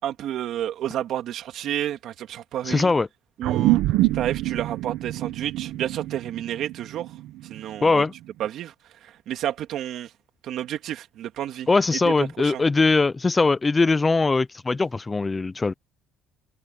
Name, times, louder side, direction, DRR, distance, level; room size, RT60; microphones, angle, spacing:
voice 1, 0.0-2.9 3.4-3.8 4.1-7.1 7.5-8.0 8.4-8.7 9.0-10.1 10.4-12.6, right 11 dB, 60° right, 2.8 m, -30 dB
voice 2, 2.6-3.1 7.8-8.1 11.7-15.7, left 3 dB, 15° left, 0.6 m, -21 dB
sound 1, 3.4-8.2, right 17 dB, 80° right, 1.3 m, -26 dB
cardioid pair, 130°, 0 cm